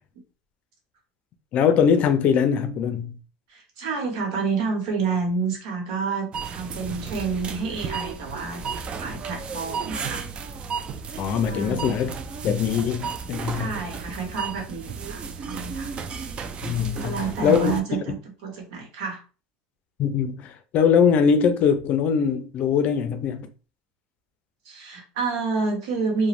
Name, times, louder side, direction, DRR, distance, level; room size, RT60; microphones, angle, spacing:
voice 1, 1.5-3.1 11.2-12.1 12.4-13.7 16.6-17.7 20.0-23.5, left 7 dB, 45° left, 0.5 m, -22 dB
voice 2, 3.5-10.3 11.4-11.9 13.5-15.9 17.0-19.2 24.6-26.3, right 4 dB, 80° right, 1.0 m, -29 dB
sound 1, 6.3-17.8, right 5 dB, 30° right, 0.3 m, -34 dB
2.5 x 2.1 x 3.0 m
supercardioid pair, 135°, 4 cm